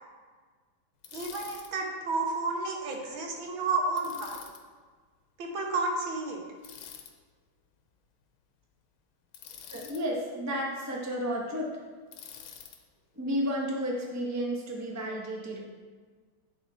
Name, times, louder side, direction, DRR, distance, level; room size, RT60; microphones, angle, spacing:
Bicycle, 1.0-1.7 4.0-4.6 6.6-7.1 9.3-10.0 12.1-12.8, left 8 dB, 85° left, 1.5 m, -46 dB
voice 1, 1.1-4.4 5.4-6.4, right 3 dB, 75° right, 1 dB, 1.9 m, -31 dB
voice 2, 9.7-11.7 13.2-15.6, equal, 20° right, -1 dB, 0.4 m, -32 dB
9.7 x 4.1 x 4.3 m, 1.5 s
omnidirectional pair, 2.2 m